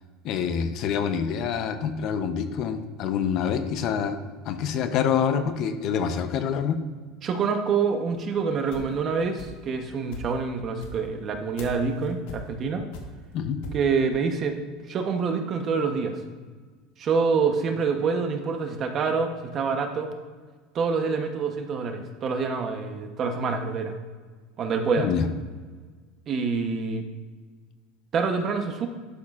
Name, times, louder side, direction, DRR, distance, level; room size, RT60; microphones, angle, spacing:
voice 1, 0.2-4.2 4.4-6.8 13.3-13.6 25.0-25.2, left 7 dB, 45° left, 8 dB, 0.7 m, -26 dB
voice 2, 7.2-12.8 13.7-14.6 14.9-16.2 17.0-20.1 20.7-23.9 24.6-25.1 26.3-27.0 28.1-28.9, right 5 dB, 30° right, 6 dB, 0.9 m, -26 dB
sound 1, 8.2-9.7 10.1-13.9, equal, 75° left, 1.6 m, -41 dB
11.5 x 9.1 x 2.4 m, 1.5 s
supercardioid pair, 155°, 0 cm